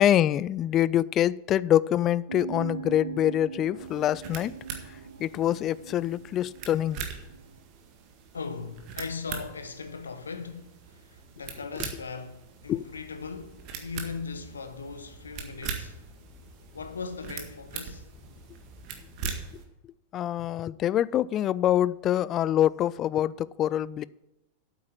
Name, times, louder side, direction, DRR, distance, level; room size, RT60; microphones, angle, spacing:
voice 1, 0.0-4.5 5.2-7.0 12.7-12.9 20.1-24.0, left 11 dB, 30° left, 0.3 m, -25 dB
sound 1, 2.3-7.6, right 6 dB, 75° right, 0.8 m, -41 dB
sound 2, 3.8-19.6, right 6 dB, 40° right, 1.8 m, -42 dB
voice 2, 8.3-16.0 16.7-18.1, left 5 dB, 75° left, 1.0 m, -39 dB
sound 3, 12.6-19.3, left 4 dB, 10° left, 2.7 m, -54 dB
8.6 x 8.4 x 7.1 m
figure-of-eight pair, 90°, 0 cm